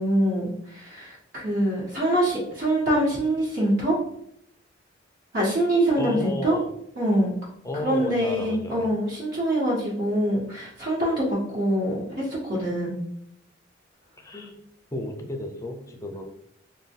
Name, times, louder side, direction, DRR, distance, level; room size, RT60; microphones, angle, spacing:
voice 1, 0.0-4.0 5.3-6.6 7.0-7.3 7.8-13.0, right 1 dB, 60° right, -6 dB, 1.5 m, -24 dB
voice 2, 6.0-6.7 7.6-8.9 14.2-14.6 14.9-16.2, left 1 dB, 15° left, 4 dB, 0.5 m, -32 dB
3.7 x 2.2 x 3.5 m, 0.72 s
head